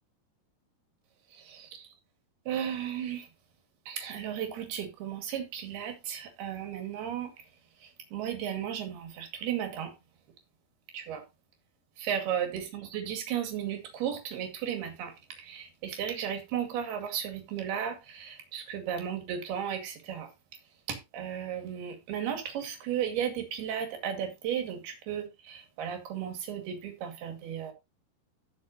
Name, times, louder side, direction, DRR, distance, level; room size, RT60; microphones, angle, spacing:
voice 1, 1.3-1.9 2.5-3.3 3.9-7.5 7.8-9.9 10.9-11.2 12.0-20.3 20.9-27.7, right 9 dB, 75° right, 4.1 m, -35 dB
15.5 x 6.4 x 2.9 m
omnidirectional pair, 4.6 m